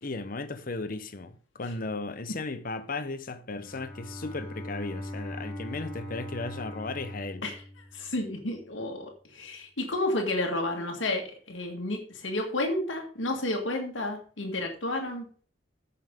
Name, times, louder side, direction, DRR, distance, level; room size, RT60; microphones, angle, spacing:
voice 1, 0.0-7.4, left 3 dB, 45° left, 0.8 m, -36 dB
Bowed string instrument, 3.5-8.5, left 1 dB, 10° left, 4.2 m, -41 dB
voice 2, 7.9-15.3, left 2 dB, 80° left, 1.8 m, -31 dB
14.5 x 5.7 x 3.7 m
head